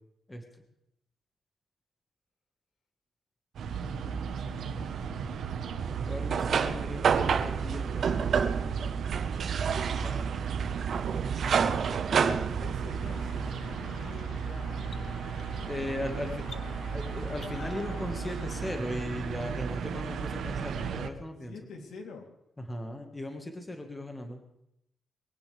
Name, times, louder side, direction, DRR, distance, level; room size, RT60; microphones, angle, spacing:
sound 1, 3.5-21.1, right 6 dB, 75° right, 1.1 m, -35 dB
voice 1, 3.7-5.6 8.9-9.4 12.1-14.9 16.0-16.9 21.5-22.3, left 4 dB, 80° left, 2 dB, 3.2 m, -48 dB
sound 2, 5.8-13.5, right 6 dB, 50° right, 0.7 m, -29 dB
voice 2, 6.1-8.5 9.9-10.4 12.1-12.3 15.7-16.4 16.9-21.5 22.6-24.4, left 1 dB, 10° left, 4 dB, 1.6 m, -37 dB
sound 3, 13.1-18.8, left 4 dB, 35° left, 0.9 m, -47 dB
22.5 x 17.0 x 3.4 m, 0.80 s
wide cardioid pair, 180°, 0 cm